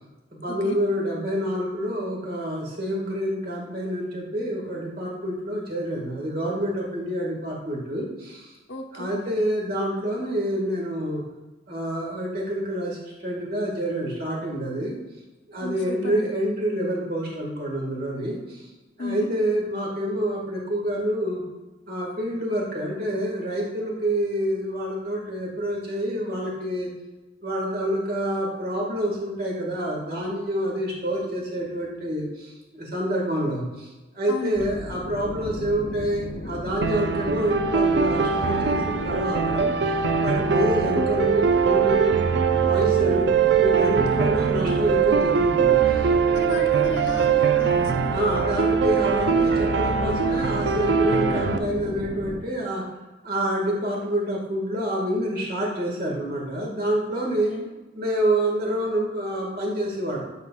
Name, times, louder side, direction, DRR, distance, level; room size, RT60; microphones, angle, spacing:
voice 1, 0.4-8.5 8.9-11.2 11.7-15.0 15.5-18.6 19.0-21.4 21.9-26.9 27.4-33.9 34.1-39.9 40.2-42.2 42.6-43.3 43.6-46.1 48.1-52.9 53.2-57.5 57.9-60.2, right 1 dB, 55° right, -2 dB, 1.9 m, -27 dB
voice 2, 8.7-9.3 15.6-16.3 19.0-19.3 34.3-34.9 43.0-43.2 44.1-44.5 46.3-48.2 57.2-57.7, left 2 dB, 85° left, 3 dB, 1.0 m, -34 dB
sound 1, 34.5-52.4, left 2 dB, 65° left, 0.6 m, -36 dB
sound 2, 36.8-51.6, right 6 dB, 75° right, 0.4 m, -22 dB
9.3 x 5.5 x 2.4 m, 1.1 s
head